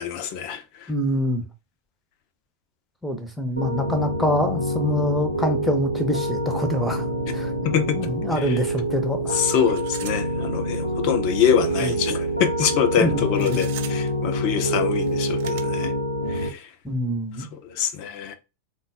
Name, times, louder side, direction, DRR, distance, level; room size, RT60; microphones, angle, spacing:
voice 1, 0.0-0.9 7.6-8.1 8.4-8.6 9.3-15.9 16.3-16.7 17.4-18.3, left 8 dB, 45° left, 0.6 m, -25 dB
voice 2, 0.9-1.4 3.0-7.1 7.3-7.5 7.9-9.4 11.8-12.1 13.0-13.6 16.8-17.5, equal, 5° left, 0.8 m, -25 dB
Piano, 3.6-16.5, equal, 85° left, 0.6 m, -26 dB
sound 1, 8.4-8.6 8.9-9.0 9.6-10.2 10.5-10.6 11.6-12.1 13.3-14.1 15.0-15.6, right 10 dB, 50° right, 0.5 m, -40 dB
3.9 x 2.2 x 3.6 m
figure-of-eight pair, 90°, 0 cm